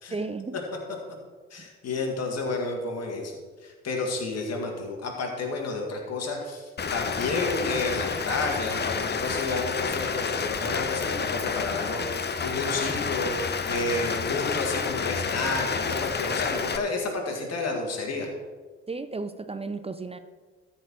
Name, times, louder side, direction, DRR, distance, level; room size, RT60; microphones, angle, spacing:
voice 1, 0.1-0.6 1.6-1.7 18.9-20.2, right 3 dB, 20° right, 10 dB, 0.6 m, -34 dB
voice 2, 1.5-18.3, left 3 dB, 50° left, 1 dB, 2.1 m, -31 dB
Rain, 6.8-16.8, left 5 dB, 30° left, 0.8 m, -29 dB
13.0 x 4.6 x 6.2 m, 1.4 s
hypercardioid pair, 45°, 32 cm